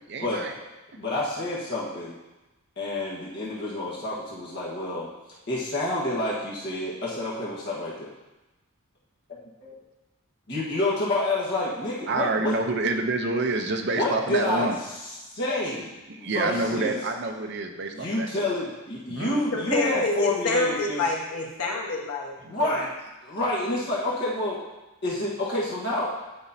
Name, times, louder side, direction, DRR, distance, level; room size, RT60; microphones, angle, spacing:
voice 1, 0.1-0.5 12.1-14.8 16.1-18.3 19.1-19.4 22.4-22.5, right 2 dB, 50° right, 4 dB, 0.7 m, -27 dB
voice 2, 1.0-2.2 2.8-5.1 5.5-8.1 9.6-9.8 10.5-12.6 13.9-14.7 15.3-17.0 17.9-21.0 22.5-22.9 23.2-24.6 25.0-26.1, left 1 dB, 50° left, -6 dB, 1.4 m, -28 dB
voice 3, 19.5-22.9, left 3 dB, 85° left, -2 dB, 1.4 m, -28 dB
10.0 x 5.2 x 2.8 m, 1.1 s
head